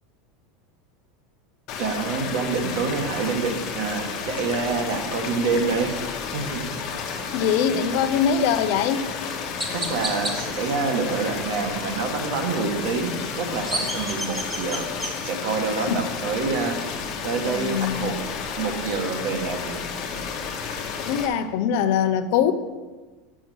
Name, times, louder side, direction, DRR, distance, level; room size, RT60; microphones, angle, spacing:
sound 1, 1.7-21.3, left 6 dB, 45° left, 1.1 m, -32 dB
voice 1, 1.8-6.0 6.3-6.6 9.7-14.9 15.2-16.9 17.2-18.1 18.6-19.8 20.6-20.7, right 4 dB, 60° right, 4 dB, 1.4 m, -27 dB
voice 2, 7.3-9.1 15.9-16.0 17.4-18.1 21.0-22.5, left 8 dB, 60° left, 10 dB, 0.6 m, -22 dB
Chirp tweet, 8.7-8.8 9.6-10.3 13.3-15.1, right 1 dB, 10° right, 1.2 m, -30 dB
6.5 x 6.3 x 6.2 m, 1.3 s
supercardioid pair, 155°, 0 cm